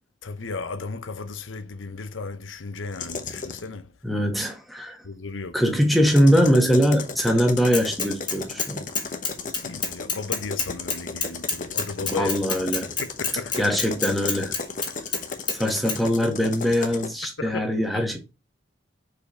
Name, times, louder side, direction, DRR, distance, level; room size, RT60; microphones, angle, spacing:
voice 1, 0.2-3.9 5.0-5.6 9.6-12.3 13.2-13.5 17.4-17.6 17.9-18.0, left 4 dB, 90° left, 0.8 m, -34 dB
sound 1, 2.9-3.7 5.9-17.1, left 4 dB, 40° left, 0.9 m, -34 dB
voice 2, 4.0-5.0 5.5-8.8 12.0-12.9 13.6-14.5 15.5-18.2, equal, ahead, 1.4 m, -22 dB
Bicycle / Mechanisms, 7.7-8.7 8.9-15.2 15.5-15.6 15.9-16.0, left 4 dB, 25° left, 2.1 m, -27 dB
5.2 x 4.7 x 4.3 m
head